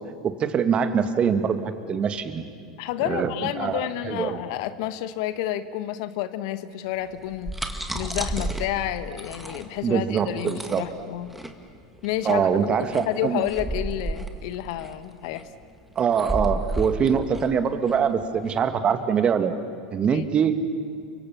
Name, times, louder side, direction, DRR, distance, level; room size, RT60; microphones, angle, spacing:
voice 1, 0.2-2.4 3.1-3.3 3.6-3.8 4.1-4.4 9.8-10.8 12.3-13.4 16.0-19.6 19.9-20.6, right 7 dB, 30° right, 9 dB, 1.9 m, -23 dB
voice 2, 2.8-11.3 12.0-15.5 20.1-20.3, left 12 dB, 60° left, 12 dB, 1.2 m, -30 dB
sound 1, 7.2-18.6, right 1 dB, 5° right, 2.2 m, -33 dB
29.5 x 24.5 x 7.2 m, 2.2 s
hypercardioid pair, 85°, 3 cm